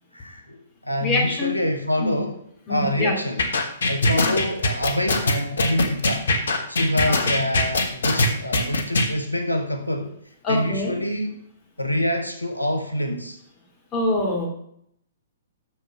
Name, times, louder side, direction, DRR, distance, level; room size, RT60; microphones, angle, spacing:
voice 1, 0.1-2.4 2.7-3.4 3.9-6.3 6.7-10.1 10.5-11.4 11.8-13.4, left 1 dB, 90° left, 5 dB, 1.1 m, -26 dB
voice 2, 1.0-1.5 2.0-2.2 2.7-3.1 4.2-4.3 7.1-7.2 10.4-10.9 13.9-14.5, left 2 dB, 20° left, -2 dB, 3.1 m, -24 dB
sound 1, 3.4-9.1, left 2 dB, 65° left, 1.4 m, -21 dB
6.9 x 6.6 x 6.4 m, 0.71 s
figure-of-eight pair, 120°, 0 cm